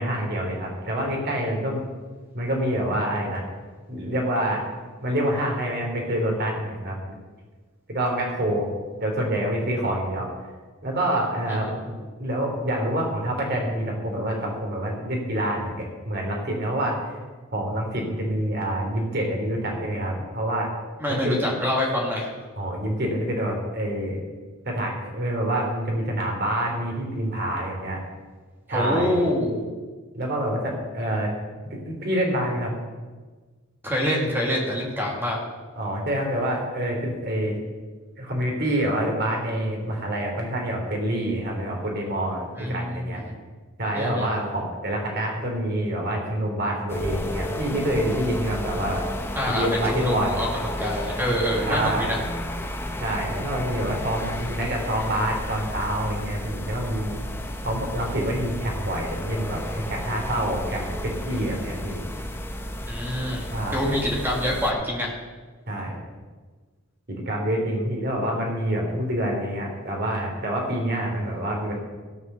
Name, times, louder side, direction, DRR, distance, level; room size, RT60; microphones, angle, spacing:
voice 1, 0.0-1.8 2.3-3.4 3.9-4.6 5.0-7.0 7.9-8.6 9.0-10.3 10.8-11.9 12.2-17.1 17.5-20.7 21.1-21.4 22.6-24.2 24.6-28.0 28.7-29.2 30.1-31.3 31.7-32.7 35.7-37.5 38.2-43.2 43.8-49.1 49.5-50.4 51.7-52.2 53.0-57.2 57.6-62.0 63.5-63.8 65.7-65.9 67.1-71.8, right 1 dB, 50° right, 0 dB, 3.1 m, -27 dB
voice 2, 11.5-11.9 21.0-22.3 28.7-29.6 33.8-35.4 42.6-43.3 43.9-44.3 49.3-50.5 50.8-52.2 62.9-63.4 63.7-65.1, left 1 dB, 10° right, -2 dB, 2.3 m, -26 dB
sound 1, 46.9-64.7, equal, 10° left, 0.9 m, -32 dB
16.5 x 5.6 x 6.8 m, 1.4 s
head